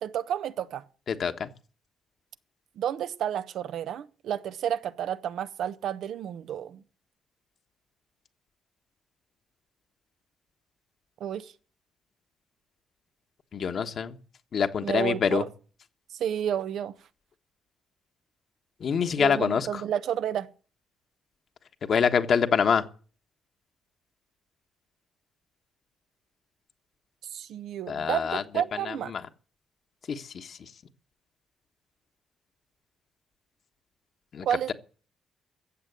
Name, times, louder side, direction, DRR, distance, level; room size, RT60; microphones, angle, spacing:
voice 1, 0.0-0.8 2.8-6.8 11.2-11.5 14.8-15.5 16.1-16.9 19.2-20.5 27.3-29.2 34.4-34.7, right 10 dB, 75° right, 0.9 m, -31 dB
voice 2, 1.1-1.5 13.5-14.2 14.5-15.4 18.8-19.8 21.8-22.8 27.9-28.4 28.9-29.2 30.1-30.6 34.3-34.7, left 6 dB, 55° left, 1.4 m, -26 dB
14.5 x 7.6 x 9.4 m
cardioid pair, 90°, 0 cm